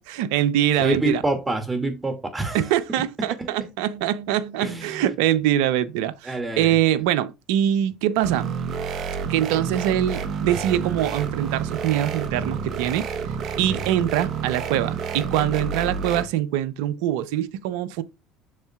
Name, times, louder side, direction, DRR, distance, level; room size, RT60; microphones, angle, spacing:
voice 1, 0.0-1.2 2.5-8.6 9.3-13.1 13.6-18.0, right 11 dB, 75° right, 0.6 m, -23 dB
voice 2, 0.8-2.7 3.4-3.5 4.6-5.0 6.2-6.8 13.7-13.9, right 2 dB, 20° right, 2.2 m, -26 dB
sound 1, 8.2-16.2, right 6 dB, 55° right, 1.0 m, -29 dB
7.5 x 6.5 x 2.4 m
hypercardioid pair, 75°, 0 cm